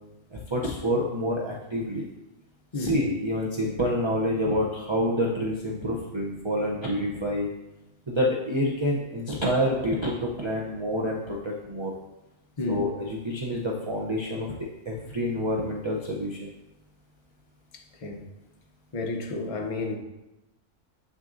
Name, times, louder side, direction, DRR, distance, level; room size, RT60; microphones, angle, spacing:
voice 1, 0.3-2.1 2.7-7.5 8.1-11.9 12.7-14.5 14.9-16.5, equal, 30° right, -3 dB, 0.6 m, -27 dB
voice 2, 17.7-18.2 18.9-20.0, left 3 dB, 35° left, 3 dB, 0.6 m, -31 dB
7.6 x 6.2 x 2.6 m, 0.97 s
omnidirectional pair, 1.4 m